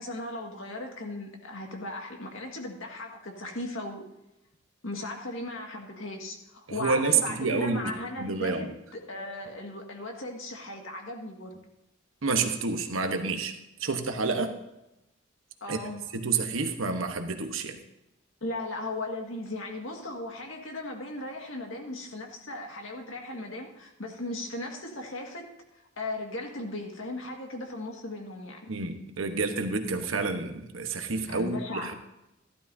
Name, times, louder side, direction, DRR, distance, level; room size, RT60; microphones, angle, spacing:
voice 1, 0.0-4.0 4.8-11.6 15.6-16.0 18.4-25.5 26.0-28.6 31.3-31.9, left 2 dB, 75° left, 2 dB, 1.9 m, -37 dB
voice 2, 6.7-7.8 8.2-8.7 12.2-13.5 13.8-14.5 15.7-15.8 16.1-17.8 28.7-31.9, right 4 dB, 85° right, 6 dB, 1.2 m, -29 dB
14.0 x 12.0 x 2.7 m, 0.91 s
head